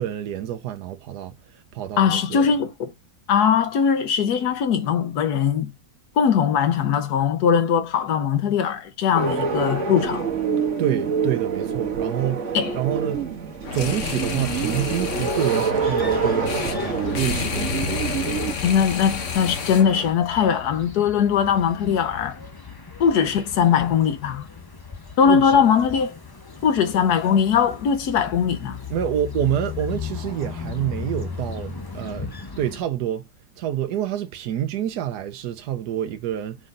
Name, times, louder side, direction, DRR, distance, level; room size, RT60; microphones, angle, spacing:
voice 1, 0.0-2.5 10.8-13.2 13.7-18.1 25.2-25.6 28.9-33.3 33.6-36.6, right 11 dB, 80° right, 1.3 m, -28 dB
voice 2, 2.0-2.9 3.3-5.7 6.2-10.3 12.5-12.7 18.6-22.4 23.0-24.5 25.2-26.2 26.6-28.8, left 7 dB, 75° left, 1.5 m, -20 dB
sound 1, 9.1-18.5, right 5 dB, 50° right, 1.6 m, -26 dB
sound 2, 13.6-20.1, left 6 dB, 50° left, 1.3 m, -30 dB
sound 3, 15.8-32.8, left 6 dB, 30° left, 0.4 m, -37 dB
4.9 x 3.9 x 5.3 m
omnidirectional pair, 1.7 m